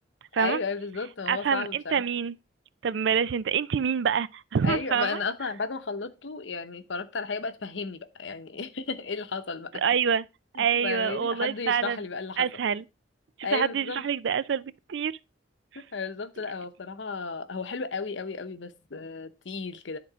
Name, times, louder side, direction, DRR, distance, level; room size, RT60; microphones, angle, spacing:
voice 1, 0.4-2.0 4.6-9.7 10.6-12.5 13.4-14.0 15.7-20.0, left 4 dB, 70° left, 0.8 m, -34 dB
voice 2, 1.3-2.4 2.8-5.2 9.7-10.2 10.6-12.0 12.4-12.8 13.5-15.1, right 7 dB, 65° right, 0.4 m, -26 dB
10.5 x 3.8 x 4.9 m
head